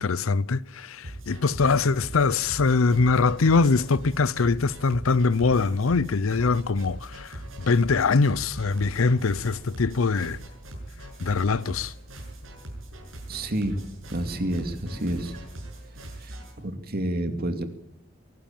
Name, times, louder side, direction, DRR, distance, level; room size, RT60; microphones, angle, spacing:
voice 1, 0.0-10.4 11.2-11.9, left 4 dB, 85° left, 0.6 m, -23 dB
sound 1, 1.0-16.5, right 1 dB, 75° right, 7.5 m, -41 dB
voice 2, 13.3-13.8 14.1-15.5 16.2-17.6, right 1 dB, 50° right, 2.4 m, -29 dB
23.0 x 13.0 x 8.9 m
head